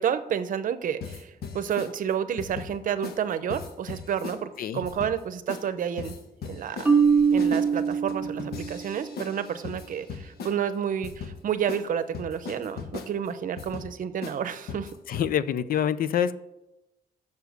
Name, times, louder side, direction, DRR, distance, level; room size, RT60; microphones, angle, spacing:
voice 1, 0.0-6.2 6.5-7.0 7.3-14.9, right 8 dB, 55° right, 12 dB, 0.7 m, -30 dB
sound 1, 1.0-1.9 2.4-2.7 3.0-3.2 3.5-4.4 4.8-5.2 5.5-5.7 6.0-10.6 11.0-11.3 11.7-11.8 12.1-13.1 13.6-13.9 14.2-14.4 14.7-15.3, left 5 dB, 80° left, 1.2 m, -38 dB
Marimba xylophone, 6.8-8.9, right 6 dB, 10° right, 0.8 m, -22 dB
voice 2, 15.1-16.4, left 9 dB, 65° left, 15 dB, 0.5 m, -26 dB
7.1 x 6.8 x 8.0 m, 0.96 s
wide cardioid pair, 155°, 16 cm